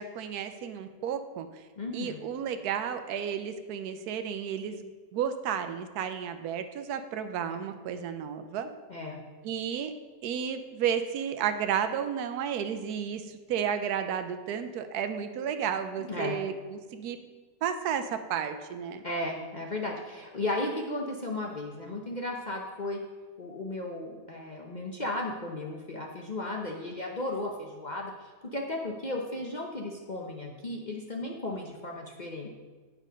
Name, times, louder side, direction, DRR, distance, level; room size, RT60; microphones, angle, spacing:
voice 1, 0.0-1.5 1.9-8.7 9.4-9.9 10.2-17.2 17.6-19.0, right 8 dB, 75° right, 9 dB, 1.2 m, -32 dB
voice 2, 1.8-2.2 8.9-9.2 16.0-16.4 19.0-23.0 23.4-32.5, left 2 dB, 40° left, 0 dB, 0.7 m, -35 dB
8.8 x 6.2 x 5.1 m, 1.4 s
omnidirectional pair, 1.7 m